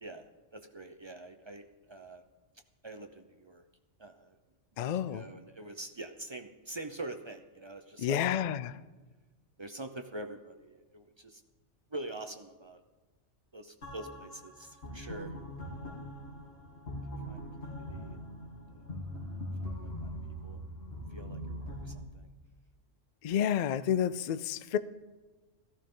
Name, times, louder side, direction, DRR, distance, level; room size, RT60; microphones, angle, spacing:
voice 1, 0.0-2.2 2.8-3.6 4.0-4.4 4.7-8.3 9.6-11.4 11.9-12.8 13.5-15.3 15.7-15.9 17.3-18.2 18.7-19.0 19.6-20.6 21.1-22.3, right 2 dB, 35° right, 0.5 m, -45 dB
voice 2, 4.8-5.2 8.0-8.8 23.2-24.8, left 9 dB, 75° left, 0.4 m, -30 dB
sound 1, 13.8-21.9, equal, 60° left, 3.0 m, -42 dB
14.0 x 14.0 x 3.8 m
omnidirectional pair, 1.3 m